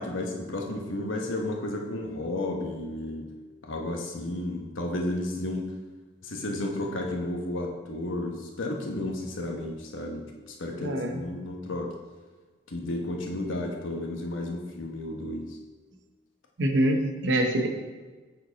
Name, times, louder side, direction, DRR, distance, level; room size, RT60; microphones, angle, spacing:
voice 1, 0.0-3.3 3.6-5.7 6.2-11.9 12.7-15.6, left 1 dB, 75° left, 1 dB, 1.0 m, -32 dB
voice 2, 10.8-11.2 16.6-17.7, right 1 dB, 60° right, 4 dB, 0.8 m, -25 dB
7.6 x 4.6 x 4.0 m, 1.3 s
head